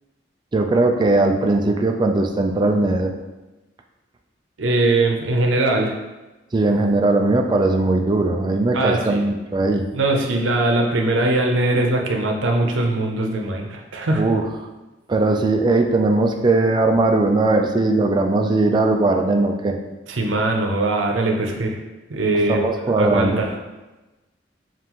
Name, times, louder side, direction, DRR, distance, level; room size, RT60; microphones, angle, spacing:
voice 1, 0.5-3.1 6.5-9.9 14.1-14.5 15.1-19.8 22.5-23.4, right 2 dB, 25° right, 3 dB, 0.3 m, -19 dB
voice 2, 4.6-5.9 8.7-9.2 9.9-14.2 20.1-21.8 22.1-22.6 23.0-23.5, right 2 dB, 80° right, 2 dB, 0.6 m, -21 dB
5.4 x 2.5 x 2.9 m, 1.1 s
head